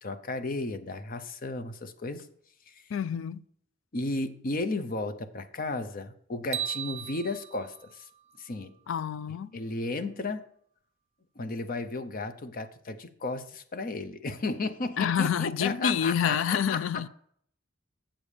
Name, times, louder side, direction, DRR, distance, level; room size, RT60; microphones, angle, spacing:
voice 1, 0.0-2.3 2.7-2.8 3.9-8.1 8.4-8.7 9.5-10.5 11.4-16.8, left 2 dB, 45° left, 0.7 m, -34 dB
voice 2, 2.9-3.4 8.9-9.6 15.0-17.1, left 8 dB, 70° left, 0.4 m, -28 dB
sound 1, 6.5-8.8, right 10 dB, 35° right, 0.3 m, -37 dB
7.3 x 7.1 x 5.0 m
head